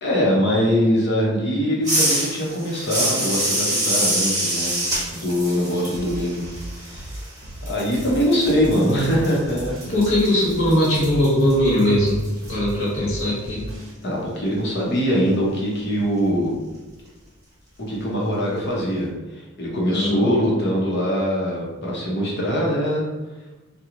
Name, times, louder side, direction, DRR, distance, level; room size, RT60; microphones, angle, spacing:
voice 1, 0.0-4.8 5.1-6.5 6.8-7.2 7.7-10.0 14.0-16.5 17.8-23.1, equal, 55° left, -3 dB, 0.9 m, -22 dB
sound 1, 1.8-7.4 7.7-12.5, right 1 dB, 15° right, 1.2 m, -26 dB
sound 2, 5.9-13.9, right 1 dB, 65° right, 0.7 m, -37 dB
voice 2, 9.9-13.7 19.9-20.3, left 1 dB, 90° left, -7 dB, 1.3 m, -20 dB
3.0 x 2.2 x 3.7 m, 1.1 s
head